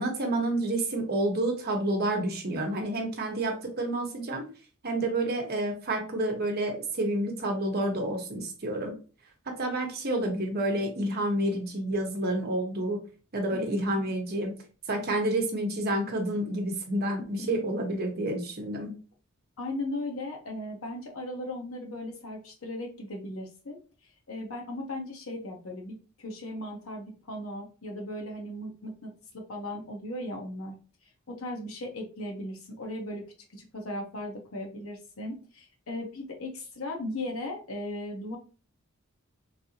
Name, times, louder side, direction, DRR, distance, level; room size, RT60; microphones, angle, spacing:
voice 1, 0.0-4.4 4.8-8.9 9.5-13.0 13.3-14.5 14.9-18.9, right 1 dB, 50° right, 2 dB, 0.9 m, -29 dB
voice 2, 13.5-14.0 17.4-17.6 19.6-23.8 24.3-30.8 31.3-33.2 33.5-38.4, left 1 dB, 75° left, 1 dB, 0.9 m, -37 dB
3.3 x 2.7 x 2.7 m, 0.36 s
head